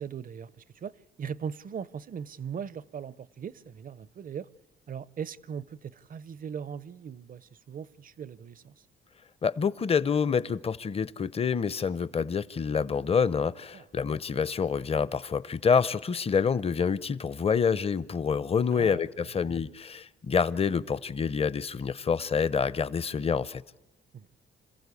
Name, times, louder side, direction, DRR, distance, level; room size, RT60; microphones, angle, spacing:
voice 1, 0.0-4.5 4.9-8.7 13.7-13.9 18.7-19.5 24.1-24.3, right 7 dB, 45° right, 0.7 m, -39 dB
voice 2, 9.4-23.6, left 6 dB, 30° left, 0.7 m, -27 dB
27.0 x 15.0 x 8.4 m
cardioid pair, 90°, 20 cm